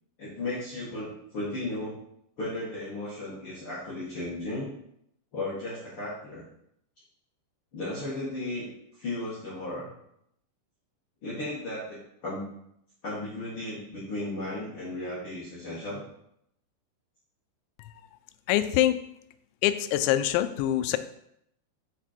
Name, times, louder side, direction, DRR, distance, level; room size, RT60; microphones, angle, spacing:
voice 1, 0.2-2.0 2.4-4.7 5.3-6.4 7.7-8.7 9.0-9.9 11.2-12.4 13.0-16.0, left 2 dB, 55° left, -8 dB, 1.6 m, -35 dB
voice 2, 18.5-19.0 19.6-21.0, left 13 dB, 90° left, 11 dB, 2.8 m, -24 dB
8.3 x 4.4 x 4.4 m, 0.74 s
omnidirectional pair, 5.1 m